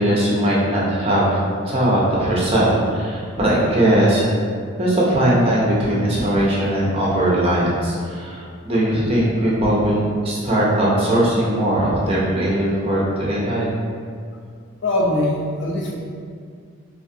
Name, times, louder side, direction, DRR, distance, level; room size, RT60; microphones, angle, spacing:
voice 1, 0.0-1.4 1.6-4.3 4.8-13.7, right 1 dB, 25° right, -6 dB, 0.5 m, -19 dB
voice 2, 14.8-16.0, left 1 dB, 55° left, -2 dB, 0.4 m, -21 dB
2.5 x 2.3 x 2.6 m, 2.2 s
head